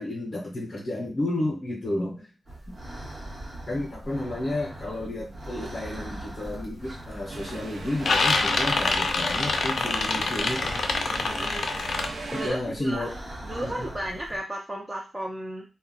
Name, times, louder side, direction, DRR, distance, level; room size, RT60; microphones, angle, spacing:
voice 1, 0.0-2.3 3.7-10.8 12.3-13.2 13.6-13.9, left 1 dB, 40° left, -2 dB, 0.7 m, -31 dB
sound 1, 2.5-14.4, right 1 dB, 55° right, 1.0 m, -41 dB
sound 2, 6.3-6.6 7.0-7.5 7.8-12.1, left 3 dB, 70° left, 0.4 m, -26 dB
sound 3, 7.3-12.5, right 3 dB, 75° right, 0.6 m, -38 dB
voice 2, 11.3-11.6 12.3-13.0 13.4-15.6, right 1 dB, 15° right, -2 dB, 0.5 m, -34 dB
2.3 x 2.1 x 3.8 m, 0.30 s
wide cardioid pair, 115°, 0 cm